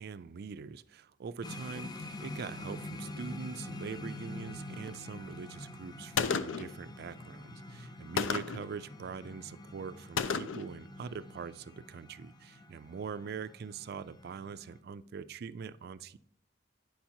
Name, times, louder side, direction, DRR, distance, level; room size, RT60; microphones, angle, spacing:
voice 1, 0.0-16.2, right 5 dB, 55° right, 14 dB, 0.4 m, -43 dB
sound 1, 1.4-14.8, left 1 dB, 20° left, 0.5 m, -46 dB
Gunshot gunfire, 6.2-6.8 8.2-8.7 10.2-10.7, left 6 dB, 85° left, 0.4 m, -32 dB
8.5 x 5.8 x 2.7 m, 0.73 s
head